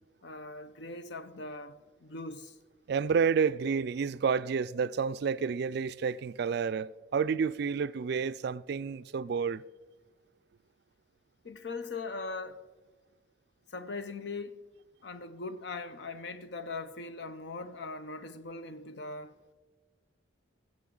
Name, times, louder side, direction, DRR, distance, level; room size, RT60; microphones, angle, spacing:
voice 1, 0.2-2.6 11.4-12.6 13.7-14.6 15.0-19.4, left 3 dB, 60° left, 0.6 m, -40 dB
voice 2, 2.9-9.6, right 6 dB, 55° right, 0.3 m, -30 dB
19.5 x 7.6 x 3.8 m
head